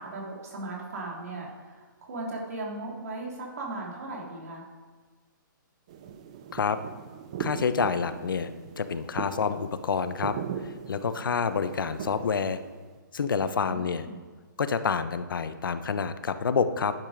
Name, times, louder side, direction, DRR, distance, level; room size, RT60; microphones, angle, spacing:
voice 1, 0.0-4.7 13.6-14.2, right 2 dB, 45° right, -3 dB, 3.6 m, -37 dB
sound 1, 5.9-13.0, right 8 dB, 20° right, 0.4 m, -39 dB
voice 2, 7.4-8.5 8.8-12.6 13.1-14.1 14.6-16.9, left 5 dB, 75° left, 11 dB, 0.9 m, -28 dB
11.0 x 10.5 x 5.2 m, 1.4 s
hypercardioid pair, 175°, 11 cm